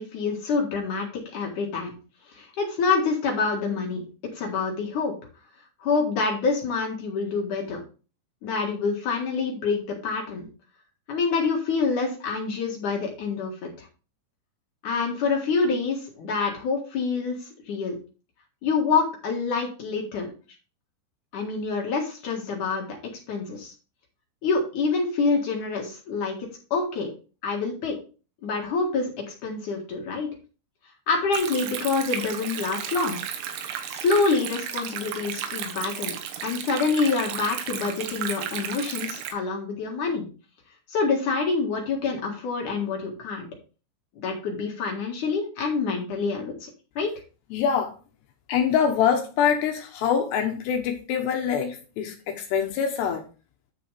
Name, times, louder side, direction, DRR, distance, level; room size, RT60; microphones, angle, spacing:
voice 1, 0.0-1.9 2.3-4.0 4.3-5.1 5.8-7.8 8.4-10.5 11.1-13.9 14.8-18.0 18.6-20.3 21.3-23.0 23.3-23.7 24.4-27.1 27.4-28.0 28.4-29.1 29.4-30.3 31.1-33.2 33.9-40.3 40.9-43.5 44.2-46.7 47.0-47.1, left 4 dB, 60° left, 0 dB, 2.3 m, -26 dB
Stream, 31.3-39.3, right 9 dB, 90° right, 3.8 m, -33 dB
voice 2, 47.5-47.9 48.5-53.2, left 7 dB, 75° left, 4 dB, 2.7 m, -24 dB
10.5 x 6.9 x 3.3 m, 0.35 s
omnidirectional pair, 5.8 m